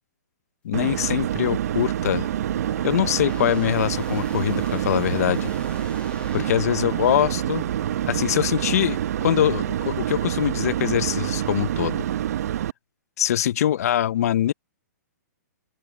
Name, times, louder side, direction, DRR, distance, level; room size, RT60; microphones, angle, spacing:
voice 1, 0.6-2.3 2.8-5.5 6.3-7.6 8.1-12.1 13.2-14.5, left 11 dB, 60° left, 1.0 m, -23 dB
sound 1, 0.7-12.7, right 11 dB, 60° right, 1.2 m, -27 dB
sound 2, 1.2-8.3, left 6 dB, 10° left, 2.4 m, -45 dB
open air
hypercardioid pair, 145°, 10 cm